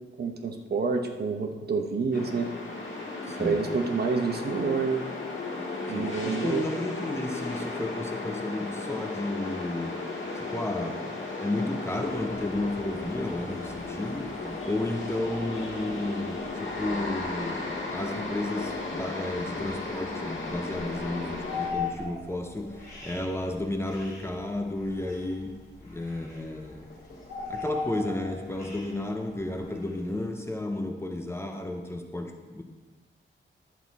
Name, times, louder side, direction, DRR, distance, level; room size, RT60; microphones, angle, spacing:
voice 1, 0.2-2.5 3.4-5.0 5.9-6.7, right 5 dB, 50° right, 4 dB, 0.9 m, -28 dB
sound 1, 2.1-21.7, left 3 dB, 65° left, 1.9 m, -35 dB
voice 2, 3.3-3.7 5.9-10.0 10.3-11.0 11.4-26.9 27.5-32.6, left 2 dB, 10° left, 4 dB, 0.7 m, -32 dB
sound 2, 12.0-30.3, left 4 dB, 50° left, 2.7 m, -42 dB
11.0 x 8.1 x 4.1 m, 1.3 s
wide cardioid pair, 170°, 20 cm